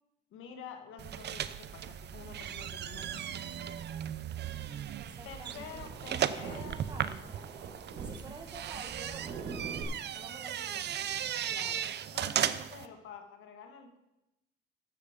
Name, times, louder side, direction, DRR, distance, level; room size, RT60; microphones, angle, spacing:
voice 1, 0.3-3.5 5.3-6.8 11.5-11.8 12.1-14.0, left 6 dB, 90° left, 5 dB, 1.7 m, -48 dB
sound 1, 1.0-12.9, right 10 dB, 60° right, 0.6 m, -36 dB
sound 2, 4.4-9.8, right 5 dB, 80° right, 1.7 m, -44 dB
voice 2, 5.0-5.8 6.1-7.3 7.7-9.6 10.0-10.9, right 2 dB, 20° right, 2 dB, 2.0 m, -50 dB
13.5 x 6.8 x 5.1 m, 0.90 s
cardioid pair, 90°, 20 cm